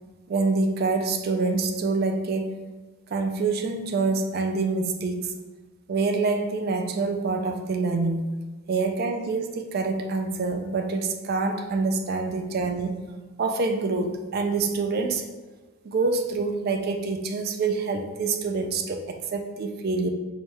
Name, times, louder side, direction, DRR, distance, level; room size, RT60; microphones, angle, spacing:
voice 1, 0.3-2.6 3.1-5.3 5.9-8.2 8.7-13.0 13.4-15.3 15.8-20.1, right 3 dB, 45° right, 6 dB, 0.3 m, -26 dB
4.4 x 2.2 x 3.1 m, 1.3 s
head